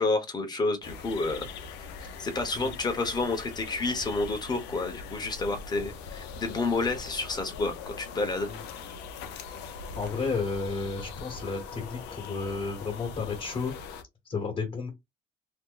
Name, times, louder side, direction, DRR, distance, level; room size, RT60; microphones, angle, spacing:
voice 1, 0.0-8.5, left 3 dB, 25° left, 1.0 m, -30 dB
sound 1, 0.8-14.0, left 5 dB, 90° left, 0.6 m, -42 dB
voice 2, 9.9-13.7 14.2-14.9, left 4 dB, 40° left, 1.3 m, -32 dB
2.9 x 2.1 x 3.7 m
cardioid pair, 110°, 17 cm